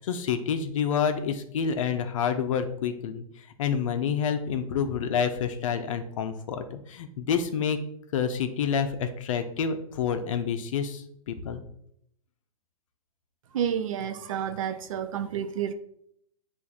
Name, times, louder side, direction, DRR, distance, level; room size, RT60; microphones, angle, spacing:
voice 1, 0.0-7.8 8.1-11.6, left 7 dB, 60° left, 0.5 m, -28 dB
voice 2, 13.5-15.7, right 9 dB, 60° right, 0.4 m, -30 dB
6.7 x 2.5 x 2.4 m
hypercardioid pair, 130°, 19 cm